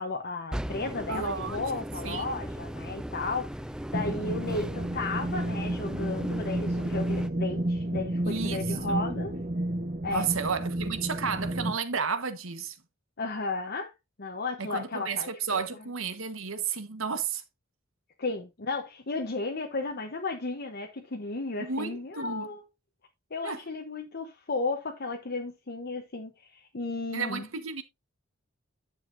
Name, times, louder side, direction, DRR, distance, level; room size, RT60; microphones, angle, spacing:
voice 1, 0.0-9.3 10.0-10.3 13.2-13.9 14.2-15.6 18.2-22.6 23.3-27.5, left 3 dB, 50° left, 1.0 m, -34 dB
sound 1, 0.5-7.3, equal, 5° right, 0.3 m, -38 dB
voice 2, 1.1-1.6 2.0-2.2 8.2-8.9 10.1-12.8 14.6-17.4 21.6-22.5 23.4-23.6 27.1-27.8, right 5 dB, 75° right, 1.3 m, -32 dB
sound 2, 3.9-11.7, right 1 dB, 40° right, 1.2 m, -31 dB
10.5 x 7.2 x 2.6 m
head